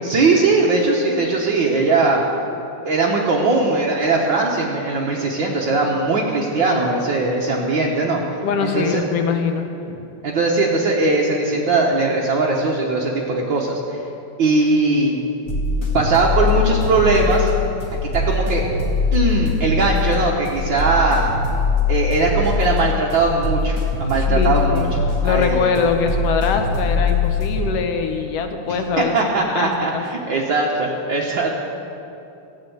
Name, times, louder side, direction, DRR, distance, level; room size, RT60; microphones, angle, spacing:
voice 1, 0.0-2.2 2.8-8.2 8.6-9.0 10.2-14.0 14.4-15.2 15.9-17.5 18.0-18.6 19.1-21.3 21.9-24.9 25.2-25.7 29.0-31.5, right 3 dB, 70° right, -3 dB, 1.1 m, -19 dB
voice 2, 8.4-9.6 24.1-30.0, left 5 dB, 70° left, 5 dB, 1.6 m, -23 dB
sound 1, 15.5-27.6, left 4 dB, 45° left, 1.9 m, -22 dB
13.5 x 8.0 x 7.8 m, 2.8 s
omnidirectional pair, 3.5 m